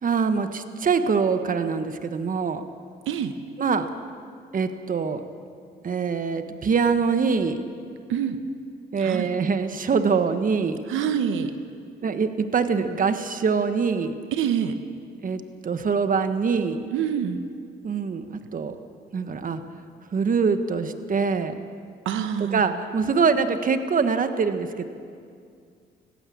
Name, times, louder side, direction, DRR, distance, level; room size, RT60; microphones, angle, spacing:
voice 1, 0.0-2.6 3.6-3.9 4.5-5.2 5.8-7.6 8.9-10.8 12.0-14.1 15.2-16.8 17.8-18.7 19.1-19.6 20.1-21.5 22.5-24.8, right 5 dB, 45° right, 9 dB, 1.4 m, -24 dB
voice 2, 9.0-9.3 10.9-11.5 14.3-14.8 16.9-17.4 22.0-22.7, right 8 dB, 85° right, 9 dB, 1.0 m, -26 dB
19.0 x 15.5 x 8.7 m, 2.3 s
cardioid pair, 90°, 20 cm